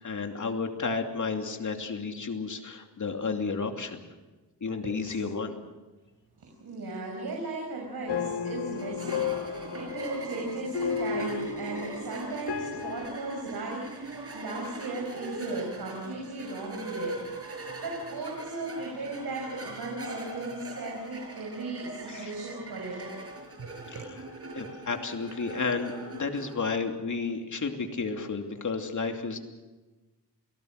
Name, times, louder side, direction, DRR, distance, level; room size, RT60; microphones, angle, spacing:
voice 1, 0.0-4.0 4.6-5.6 22.1-22.3 23.9-24.0 24.5-29.4, left 4 dB, 45° left, 4 dB, 2.8 m, -32 dB
voice 2, 4.8-5.2 6.4-23.1 23.6-24.1, right 2 dB, 65° right, 0 dB, 6.0 m, -36 dB
sound 1, 8.1-13.1, left 7 dB, 80° left, 1.7 m, -33 dB
sound 2, 8.7-26.5, right 2 dB, 35° right, 6.1 m, -42 dB
28.5 x 18.0 x 6.5 m, 1.2 s
cardioid pair, 95°, 40 cm